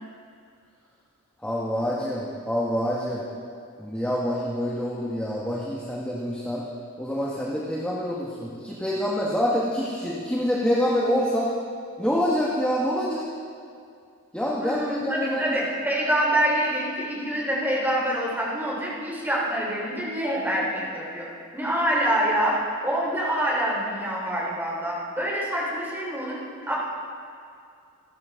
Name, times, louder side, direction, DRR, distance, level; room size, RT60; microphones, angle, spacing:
voice 1, 1.4-3.2 3.8-6.6 7.0-11.5 12.0-13.3 14.3-15.6, equal, 5° left, -6 dB, 1.6 m, -26 dB
voice 2, 14.6-21.3 21.5-26.4 26.7-26.8, right 1 dB, 10° right, -5 dB, 4.0 m, -26 dB
28.5 x 12.0 x 3.8 m, 2.4 s
head